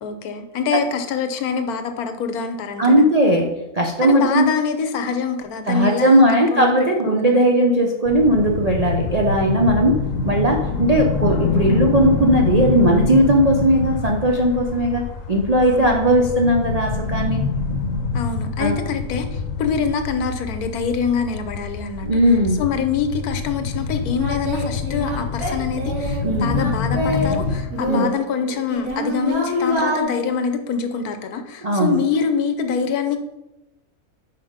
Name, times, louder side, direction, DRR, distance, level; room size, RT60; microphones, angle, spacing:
voice 1, 0.0-3.1 4.0-6.7 7.0-7.4 15.7-15.9 18.1-22.1 22.6-33.2, left 6 dB, 90° left, 8 dB, 1.3 m, -25 dB
voice 2, 2.8-4.5 5.7-17.4 18.6-18.8 22.0-22.6 26.2-26.5 27.9-28.1 31.6-32.0, right 1 dB, 45° right, 1 dB, 0.5 m, -18 dB
sound 1, 8.1-27.6, left 4 dB, 65° left, 1.1 m, -26 dB
Singing, 23.5-23.6 24.1-27.3 27.7-30.0, left 1 dB, 90° right, 2.6 m, -25 dB
5.8 x 4.9 x 5.0 m, 0.94 s
omnidirectional pair, 1.5 m